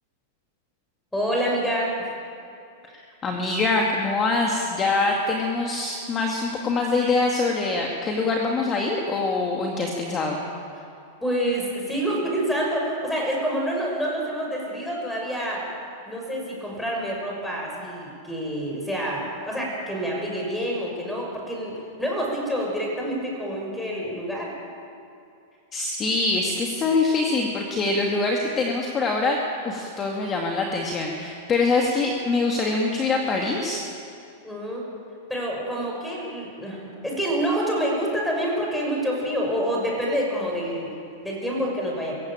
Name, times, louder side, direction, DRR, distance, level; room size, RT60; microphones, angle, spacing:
voice 1, 1.1-1.9 11.2-15.6 16.1-21.7 22.0-24.5 34.4-34.8 35.3-40.9 41.2-42.1, equal, 5° left, -2 dB, 6.2 m, -27 dB
voice 2, 3.2-10.4 25.7-29.4 29.6-33.8, left 3 dB, 25° left, 0 dB, 2.2 m, -24 dB
22.0 x 16.0 x 8.9 m, 2.6 s
supercardioid pair, 140°, 0 cm